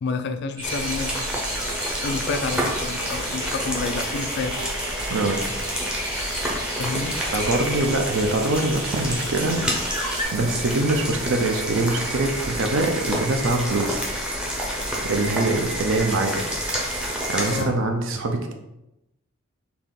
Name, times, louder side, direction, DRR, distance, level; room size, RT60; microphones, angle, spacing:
voice 1, 0.0-1.3 1.9-4.6 6.8-7.2 17.5-17.8, left 4 dB, 50° left, 8 dB, 0.3 m, -29 dB
sound 1, 0.6-17.6, equal, 5° right, 0.6 m, -29 dB
sound 2, 0.6-10.3, equal, 20° right, 1.5 m, -33 dB
voice 2, 7.1-9.6 10.3-14.0 15.0-16.4 17.3-18.5, right 2 dB, 60° right, 4 dB, 0.5 m, -23 dB
4.0 x 2.9 x 3.7 m, 0.91 s
head